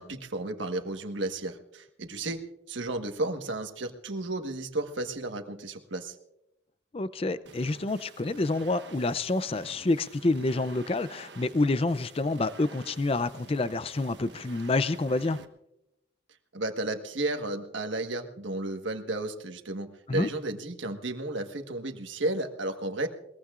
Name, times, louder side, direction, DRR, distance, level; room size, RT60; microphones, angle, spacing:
voice 1, 0.0-6.2 16.5-23.1, right 2 dB, 85° right, 6 dB, 1.4 m, -33 dB
voice 2, 6.9-15.4 20.1-20.3, left 2 dB, 30° left, 14 dB, 0.5 m, -28 dB
sound 1, 7.5-15.5, right 4 dB, 65° right, 1.3 m, -50 dB
21.5 x 21.5 x 2.5 m, 0.86 s
head